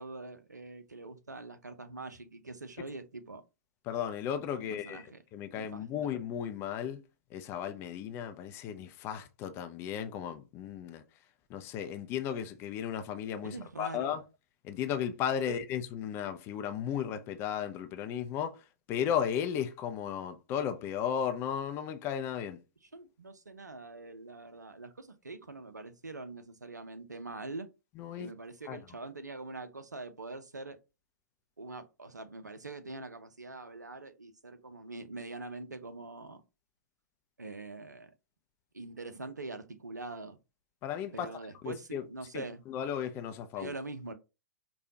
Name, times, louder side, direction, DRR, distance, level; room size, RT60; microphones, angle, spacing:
voice 1, 0.0-3.4 4.6-5.2 5.5-6.1 13.4-14.1 15.5-15.6 22.8-27.7 28.2-30.8 31.6-36.4 37.4-38.1 38.7-40.4 41.1-42.6 43.5-44.1, right 3 dB, 80° right, 0.6 m, -44 dB
voice 2, 3.9-5.1 5.3-7.0 7.3-11.0 11.5-14.2 14.6-18.6 18.9-22.6 28.0-28.3 28.7-28.8 40.8-41.3 41.6-42.0 42.3-43.7, left 8 dB, 25° left, 0.4 m, -35 dB
5.0 x 2.3 x 2.8 m
figure-of-eight pair, 110°, 9 cm